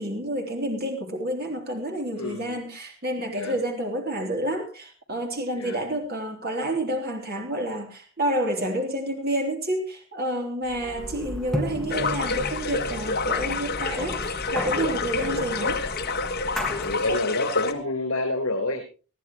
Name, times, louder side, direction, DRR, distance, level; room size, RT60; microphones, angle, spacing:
voice 1, 0.0-15.8, right 1 dB, 45° right, 3 dB, 3.3 m, -29 dB
voice 2, 2.1-2.5 3.3-3.6 5.6-5.8 16.8-18.8, left 2 dB, 75° left, 2 dB, 4.0 m, -28 dB
sound 1, 10.7-17.2, equal, ahead, 1.7 m, -34 dB
sound 2, 11.9-17.7, left 4 dB, 45° left, 1.6 m, -28 dB
21.0 x 13.5 x 3.1 m, 0.34 s
head